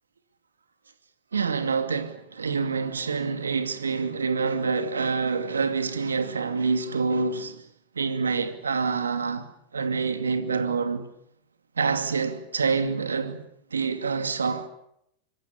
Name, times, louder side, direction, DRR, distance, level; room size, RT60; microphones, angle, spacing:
voice 1, 1.3-7.6 7.9-9.5 9.7-11.1 11.8-13.4 13.7-14.7, right 5 dB, 80° right, 2.6 m, -26 dB
26.0 x 22.5 x 8.4 m
figure-of-eight pair, 95°, 0 cm